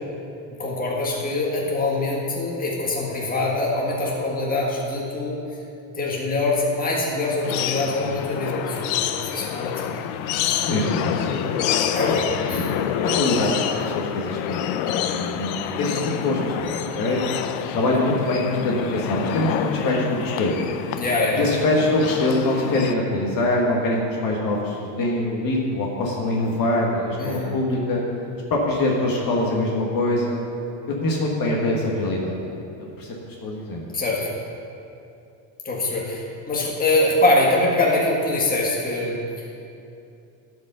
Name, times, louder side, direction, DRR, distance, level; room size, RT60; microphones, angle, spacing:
voice 1, 0.6-5.4 5.9-9.9 11.9-12.7 21.0-21.6 27.2-27.5 33.9-34.3 35.6-39.6, left 2 dB, 15° left, -4 dB, 1.7 m, -24 dB
sound 1, 7.4-22.9, left 10 dB, 75° left, 0.7 m, -27 dB
voice 2, 10.7-11.5 12.0-12.1 12.6-12.7 13.0-17.2 17.7-20.6 21.4-28.0 28.5-30.4 31.0-32.4 32.8-33.1 33.4-33.9, left 2 dB, 45° left, -2 dB, 1.6 m, -24 dB
11.5 x 5.2 x 6.7 m, 2.7 s
cardioid pair, 140°, 49 cm